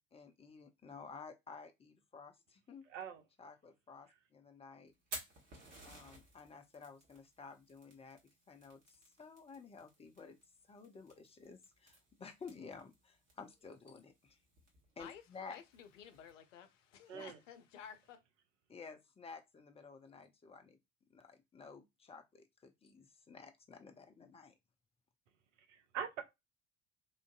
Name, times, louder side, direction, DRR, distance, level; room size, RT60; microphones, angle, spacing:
voice 1, 0.0-2.9 3.4-4.9 5.8-8.2 8.5-10.4 10.6-14.4 15.0-15.6 17.1-17.2 18.7-20.8 21.1-24.5, left 5 dB, 15° left, 0.5 m, -53 dB
voice 2, 2.9-3.2 17.1-17.4 25.7-26.2, right 7 dB, 70° right, 0.7 m, -43 dB
Fire, 4.9-16.3, right 2 dB, 40° right, 1.6 m, -56 dB
voice 3, 15.0-18.2, left 8 dB, 70° left, 0.6 m, -54 dB
3.5 x 2.5 x 2.3 m
figure-of-eight pair, 60°, 39 cm